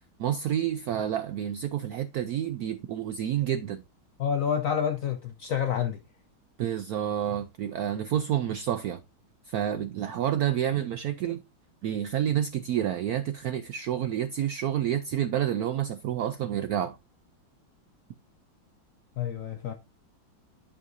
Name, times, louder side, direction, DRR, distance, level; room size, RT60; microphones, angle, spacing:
voice 1, 0.2-3.8 6.6-9.0 9.5-11.4 11.8-17.0, right 10 dB, 80° right, 0.8 m, -29 dB
voice 2, 4.2-6.0 19.2-19.7, left 8 dB, 75° left, 0.7 m, -28 dB
11.0 x 5.7 x 2.6 m
omnidirectional pair, 2.1 m